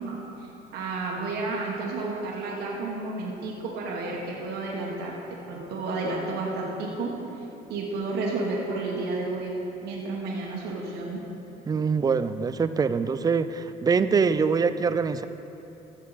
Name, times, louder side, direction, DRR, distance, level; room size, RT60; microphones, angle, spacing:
voice 1, 0.0-5.2 5.5-7.1 7.7-9.5 9.8-11.2, right 3 dB, 75° right, -3 dB, 1.4 m, -31 dB
voice 2, 11.7-15.3, right 5 dB, 20° right, 11 dB, 0.4 m, -24 dB
14.5 x 7.3 x 4.1 m, 3.0 s
cardioid pair, 110°, 17 cm